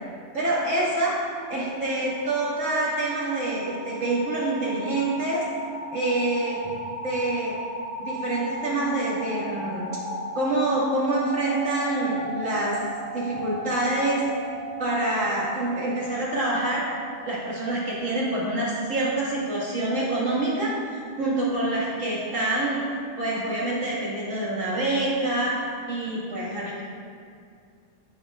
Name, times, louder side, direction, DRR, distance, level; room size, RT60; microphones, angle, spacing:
voice 1, 0.3-1.1 1.5-5.4 5.9-6.7 7.0-7.5 8.0-10.0 10.3-12.8 13.1-14.2 14.8-16.8 17.2-22.8 23.2-26.8, right 2 dB, 85° right, -7 dB, 2.6 m, -26 dB
sound 1, 1.4-18.8, right 1 dB, 65° left, 1.7 m, -36 dB
9.8 x 8.7 x 2.5 m, 2.3 s
omnidirectional pair, 1.3 m